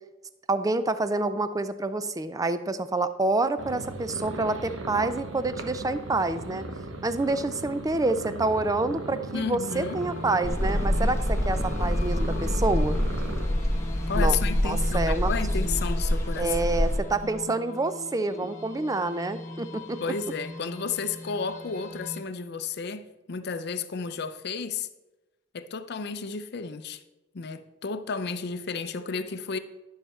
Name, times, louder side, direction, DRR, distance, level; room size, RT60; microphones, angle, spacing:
voice 1, 0.5-6.6 7.0-13.0 14.1-14.4 14.6-15.3 16.4-20.0, right 2 dB, 20° right, 0.4 m, -27 dB
sound 1, 3.6-13.5, right 2 dB, 75° right, 0.9 m, -37 dB
voice 2, 9.3-10.0 14.1-16.5 17.5-17.6 20.0-24.9 25.5-27.0 27.3-29.6, left 5 dB, 55° left, 0.5 m, -32 dB
sound 2, 9.6-22.2, left 1 dB, 40° left, 1.1 m, -41 dB
sound 3, 10.4-17.0, left 1 dB, 15° left, 1.0 m, -26 dB
11.5 x 5.6 x 4.3 m
head